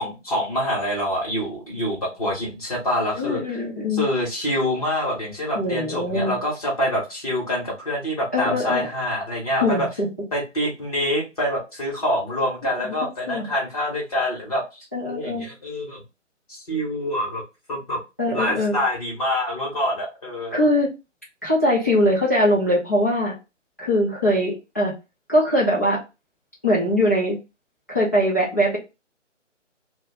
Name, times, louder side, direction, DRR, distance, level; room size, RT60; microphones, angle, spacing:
voice 1, 0.0-3.6 3.9-9.9 10.3-14.6 15.0-16.0 16.5-17.4 17.7-18.0 18.3-20.7, equal, 30° left, -3 dB, 1.0 m, -26 dB
voice 2, 3.1-4.1 5.5-6.3 8.3-8.8 9.6-10.1 12.8-12.9 13.3-13.5 14.9-15.4 18.2-18.8 20.5-20.9 21.4-23.3 23.8-24.9 25.3-26.0 26.6-27.4 27.9-28.8, left 1 dB, 15° left, -8 dB, 0.6 m, -21 dB
2.6 x 2.2 x 3.7 m, 0.26 s
figure-of-eight pair, 155°, 37 cm